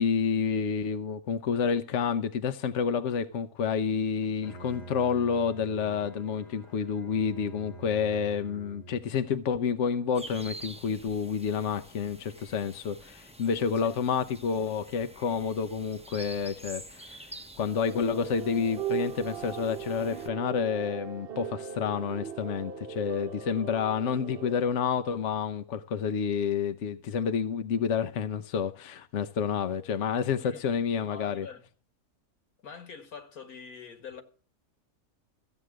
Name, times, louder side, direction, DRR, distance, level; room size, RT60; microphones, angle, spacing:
voice 1, 0.0-17.2 17.6-31.5, left 6 dB, 60° left, 1.0 m, -29 dB
Bowed string instrument, 4.2-9.3, right 3 dB, 30° left, 1.4 m, -47 dB
sound 1, 10.1-20.3, right 1 dB, 10° right, 0.4 m, -48 dB
sound 2, 17.7-24.6, right 8 dB, 50° right, 0.9 m, -38 dB
voice 2, 31.0-31.7 32.6-34.2, left 6 dB, 75° left, 2.2 m, -44 dB
15.0 x 8.1 x 6.2 m
omnidirectional pair, 1.5 m